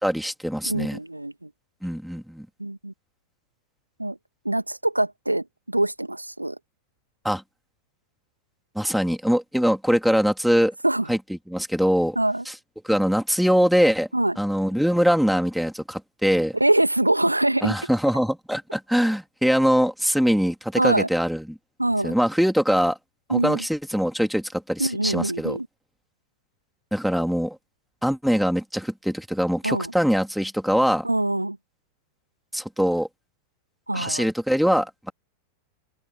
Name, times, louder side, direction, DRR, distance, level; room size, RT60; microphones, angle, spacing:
voice 1, 0.0-1.0 1.8-2.4 7.2-7.4 8.7-10.7 11.1-11.2 11.5-12.1 12.4-12.5 12.8-14.1 14.4-16.5 17.6-21.6 22.0-23.0 23.3-25.6 26.9-27.6 28.0-31.0 32.5-33.1 33.9-35.1, equal, ahead, 3.5 m, -22 dB
voice 2, 0.7-1.5 2.6-2.9 4.0-4.2 4.4-6.6 10.8-11.1 12.2-12.4 14.1-14.4 16.6-17.8 20.8-21.1 21.8-22.1 23.3-23.6 24.8-25.7 29.6-29.9 31.0-31.6 33.9-34.3, right 1 dB, 85° right, 2.4 m, -24 dB
figure-of-eight pair, 90°, 0 cm